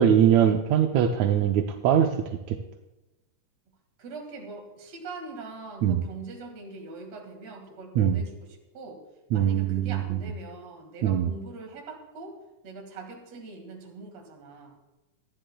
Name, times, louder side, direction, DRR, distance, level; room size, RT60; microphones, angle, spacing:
voice 1, 0.0-2.1 2.5-2.6 5.8-6.0 7.9-8.2 9.3-10.2 11.0-11.3, right 9 dB, 80° right, 4 dB, 1.7 m, -22 dB
voice 2, 4.0-9.0 9.3-12.4 12.6-14.8, right 3 dB, 55° right, 2 dB, 2.9 m, -42 dB
26.0 x 10.0 x 2.3 m, 1.0 s
omnidirectional pair, 3.8 m